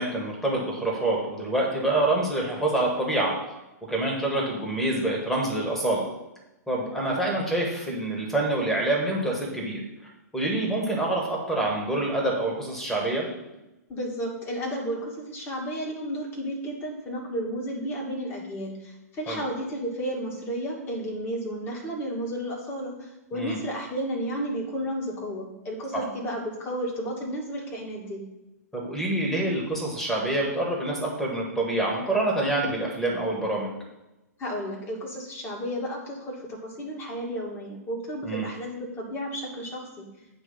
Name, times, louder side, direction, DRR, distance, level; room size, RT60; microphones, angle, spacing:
voice 1, 0.0-3.3 3.9-6.0 6.7-9.8 10.3-13.3 19.3-19.4 23.3-23.6 25.9-26.0 28.7-33.7 38.2-38.5, right 2 dB, 5° left, -2 dB, 1.6 m, -26 dB
voice 2, 13.9-28.2 34.4-40.1, equal, 25° left, -2 dB, 2.0 m, -32 dB
8.2 x 3.2 x 5.6 m, 0.97 s
figure-of-eight pair, 115°, 9 cm